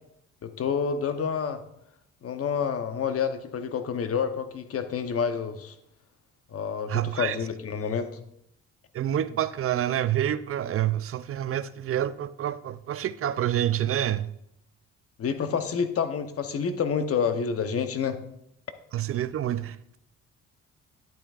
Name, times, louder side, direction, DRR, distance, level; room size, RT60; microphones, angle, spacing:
voice 1, 0.4-1.6 2.2-5.7 6.5-8.1 15.2-18.2, left 6 dB, 50° left, 0.9 m, -28 dB
voice 2, 6.9-7.4 8.9-14.3 18.9-20.0, right 11 dB, 50° right, 0.5 m, -28 dB
10.5 x 8.9 x 2.4 m
cardioid pair, 90°, 30 cm